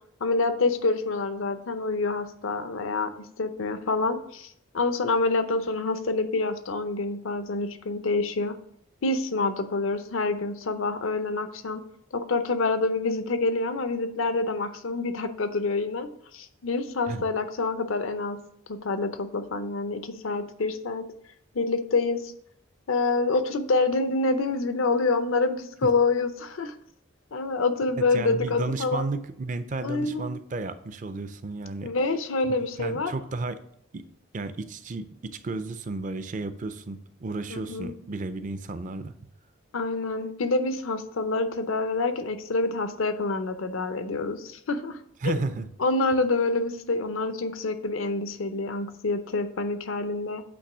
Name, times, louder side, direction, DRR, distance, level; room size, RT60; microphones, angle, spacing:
voice 1, 0.2-8.6 9.0-11.8 12.1-18.4 18.7-21.0 21.5-22.3 22.9-26.7 27.3-29.1 29.8-30.3 31.8-33.1 37.5-37.9 39.7-45.0 45.2-45.3 45.8-50.4, left 3 dB, 75° left, 10 dB, 0.6 m, -27 dB
voice 2, 28.1-31.9 32.4-33.6 33.9-34.1 34.3-39.1 45.2-45.7, right 3 dB, 35° right, 12 dB, 0.4 m, -33 dB
8.6 x 3.0 x 6.0 m, 0.69 s
head